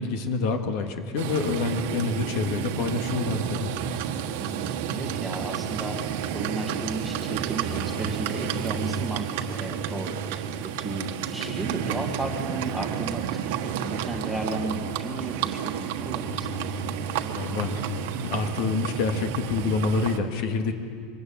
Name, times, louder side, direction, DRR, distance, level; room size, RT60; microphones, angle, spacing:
voice 1, 0.0-3.7 17.3-17.7 18.2-20.7, left 4 dB, 55° left, 5 dB, 1.9 m, -27 dB
Livestock farm animals working animals, 1.2-20.2, right 8 dB, 70° right, 1.4 m, -31 dB
voice 2, 4.4-13.3 13.6-16.6, right 2 dB, ahead, 1 dB, 1.8 m, -34 dB
sound 1, 4.5-18.5, right 11 dB, 90° right, 1.3 m, -44 dB
24.0 x 19.5 x 8.7 m, 2.2 s
cardioid pair, 180°, 0 cm